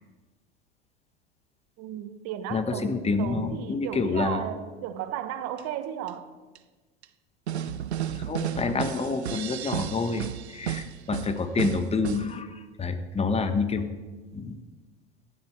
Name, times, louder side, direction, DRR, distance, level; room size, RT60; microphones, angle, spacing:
voice 1, 1.8-6.3, right 10 dB, 50° right, 10 dB, 1.4 m, -35 dB
voice 2, 2.5-4.4 8.3-10.3 10.5-13.9 14.3-14.6, left 4 dB, 20° left, 9 dB, 1.4 m, -28 dB
sound 1, 5.6-5.7 6.1-6.2 6.5-6.6 7.0-7.1 7.5-12.3, right 10 dB, 90° right, 0.7 m, -33 dB
15.0 x 11.5 x 4.7 m, 1.3 s
hypercardioid pair, 85°, 32 cm